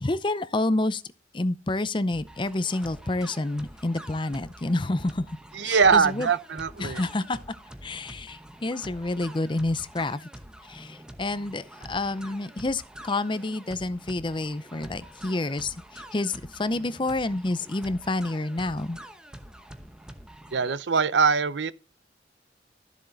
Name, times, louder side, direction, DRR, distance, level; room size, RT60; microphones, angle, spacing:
voice 1, 0.0-1.0 1.3-5.2 5.6-6.3 6.8-7.4 7.8-10.3 10.7-19.0, left 2 dB, 25° left, 0.6 m, -29 dB
sound 1, 2.1-20.8, right 1 dB, 5° right, 0.9 m, -46 dB
voice 2, 5.5-7.0 20.5-21.7, right 5 dB, 75° right, 0.6 m, -22 dB
13.0 x 7.3 x 4.0 m
head